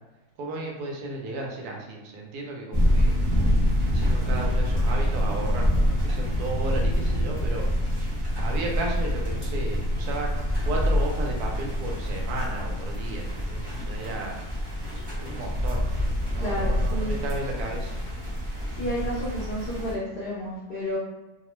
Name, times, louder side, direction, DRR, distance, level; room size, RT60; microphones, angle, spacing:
voice 1, 0.4-3.2 3.9-7.7 8.4-14.4 15.2-17.9, right 2 dB, 80° right, 0 dB, 1.1 m, -34 dB
sound 1, 2.7-19.9, equal, 25° right, 0.5 m, -26 dB
voice 2, 16.4-17.2 18.8-21.0, equal, 60° left, -7 dB, 0.6 m, -31 dB
2.9 x 2.0 x 3.0 m, 1.1 s
omnidirectional pair, 1.6 m